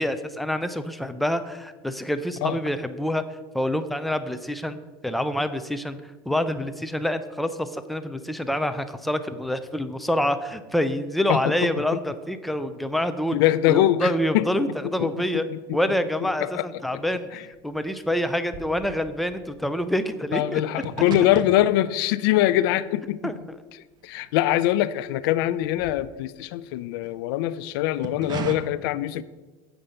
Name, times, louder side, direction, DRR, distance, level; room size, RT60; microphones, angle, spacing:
voice 1, 0.0-3.2 3.5-4.8 5.0-6.0 6.3-13.4 13.7-15.4 15.7-20.8 23.2-23.4, equal, ahead, 10 dB, 0.5 m, -27 dB
voice 2, 13.3-14.5 15.0-15.8 16.4-16.7 20.3-23.3 24.0-29.2, left 14 dB, 75° left, 16 dB, 0.4 m, -23 dB
sound 1, 16.3-16.5 16.8-25.1 25.4-27.2 27.8-28.5, right 7 dB, 35° right, 0.9 m, -39 dB
7.9 x 5.0 x 5.6 m, 1.2 s
supercardioid pair, 115°, 12 cm